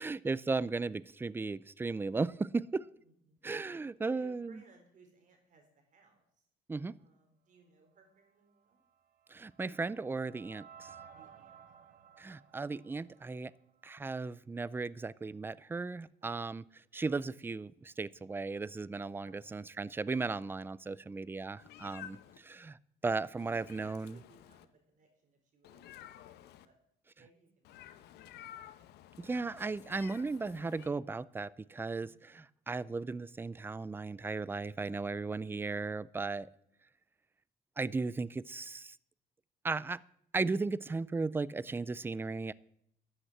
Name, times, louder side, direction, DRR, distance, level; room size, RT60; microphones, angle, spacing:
voice 1, 0.0-2.9 3.4-4.6 6.7-6.9 9.3-10.9 12.2-13.5 13.8-16.6 16.9-22.8 23.0-24.2 29.2-36.5 37.8-39.0 39.6-40.0 40.3-42.5, right 3 dB, 15° right, 0.4 m, -36 dB
voice 2, 3.0-3.4 4.0-6.2 7.0-8.8 11.1-11.6 16.2-16.3 19.2-19.6 23.5-26.7 27.2-29.2 32.0-32.3, right 4 dB, 50° right, 4.1 m, -64 dB
sound 1, 8.8-14.0, right 7 dB, 65° right, 1.3 m, -57 dB
Meow, 21.6-22.4 23.4-24.7 25.6-26.7 27.6-30.9, left 11 dB, 80° left, 0.9 m, -52 dB
12.5 x 8.0 x 7.4 m
cardioid pair, 110°, 17 cm